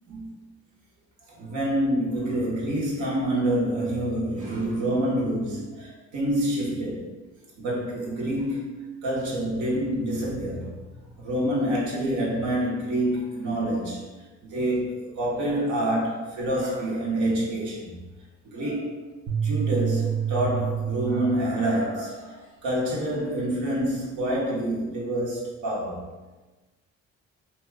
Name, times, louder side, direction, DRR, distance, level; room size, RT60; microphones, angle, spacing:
voice 1, 0.1-0.4 1.3-7.0 7.6-10.8 11.2-14.0 14.4-18.0 18.4-19.0 19.4-26.0, right 1 dB, 85° right, -5 dB, 0.9 m, -27 dB
sound 1, 19.3-21.8, right 8 dB, 55° right, 0.5 m, -28 dB
2.7 x 2.2 x 3.3 m, 1.2 s
cardioid pair, 90°, 30 cm